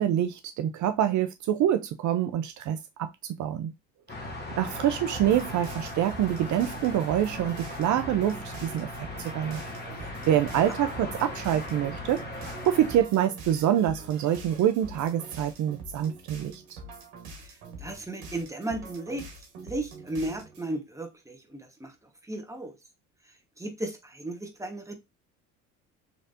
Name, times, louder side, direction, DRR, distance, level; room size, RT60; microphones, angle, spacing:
voice 1, 0.0-3.7 4.5-8.9 9.2-9.6 10.0-12.2 12.6-16.8, right 11 dB, 50° right, 0.5 m, -26 dB
sound 1, 4.1-13.0, left 1 dB, 25° left, 1.5 m, -38 dB
sound 2, 5.1-20.7, right 2 dB, 85° right, 1.4 m, -45 dB
voice 2, 17.4-19.3 19.6-21.9 22.3-22.7 23.6-24.9, right 1 dB, 10° right, 1.2 m, -35 dB
4.1 x 3.2 x 2.5 m
supercardioid pair, 75°, 37 cm